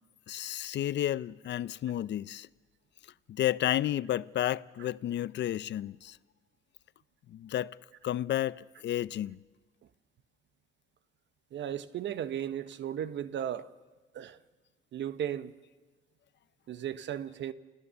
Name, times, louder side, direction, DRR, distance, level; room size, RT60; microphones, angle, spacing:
voice 1, 0.3-2.5 3.3-6.2 7.3-7.8 8.0-9.4, left 12 dB, 65° left, 0.6 m, -31 dB
voice 2, 11.5-13.7 14.1-14.4 14.9-15.5 16.7-17.5, right 10 dB, 65° right, 1.0 m, -35 dB
29.0 x 16.0 x 7.0 m
cardioid pair, 90°, 20 cm